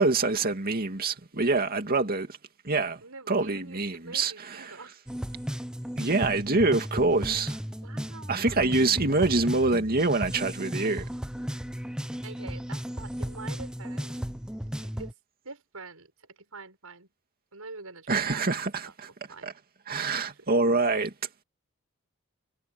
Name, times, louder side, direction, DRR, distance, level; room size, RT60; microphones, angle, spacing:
voice 1, 0.0-2.4 2.6-3.0 3.3-4.7 6.0-7.6 8.3-11.1 18.1-19.1 19.4-19.5 19.9-21.1, right 3 dB, 45° right, 2.4 m, -25 dB
voice 2, 3.0-5.0 7.8-9.2 12.2-14.3 14.8-15.2 15.4-17.1 17.5-18.9 19.3-19.5 20.4-20.5, right 3 dB, 80° right, 6.6 m, -46 dB
sound 1, 5.1-15.1, equal, 5° right, 0.8 m, -35 dB
head